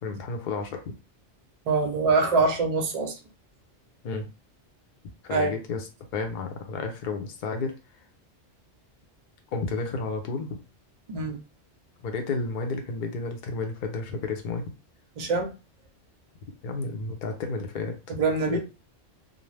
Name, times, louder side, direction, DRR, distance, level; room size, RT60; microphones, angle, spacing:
voice 1, 0.0-0.9 4.0-4.3 5.2-5.8 6.1-7.8 9.5-10.6 12.0-14.6 16.6-18.2 18.5-18.6, left 3 dB, 55° left, 0.6 m, -31 dB
voice 2, 1.7-3.1 5.3-5.5 11.1-11.4 15.2-15.5 18.2-18.6, right 3 dB, 50° right, 0.5 m, -24 dB
2.5 x 2.0 x 3.1 m
omnidirectional pair, 1.2 m